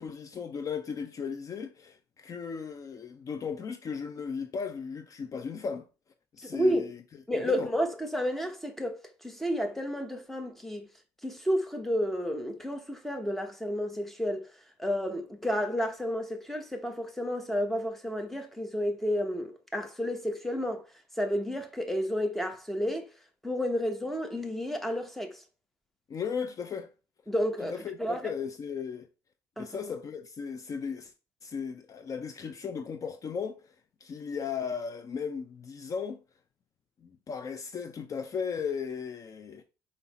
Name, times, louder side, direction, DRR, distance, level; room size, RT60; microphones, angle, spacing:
voice 1, 0.0-5.9 6.3-7.0 7.3-7.7 26.1-26.9 27.7-29.1 29.6-31.1 31.4-33.6 34.0-36.2 37.0-39.6, left 6 dB, 35° left, 0.6 m, -36 dB
voice 2, 6.4-6.9 7.3-10.9 11.2-14.5 14.8-20.8 21.2-23.1 23.4-25.4 27.3-28.3 29.6-29.8, equal, 5° left, 1.0 m, -31 dB
5.5 x 5.1 x 4.2 m
cardioid pair, 135°, 9 cm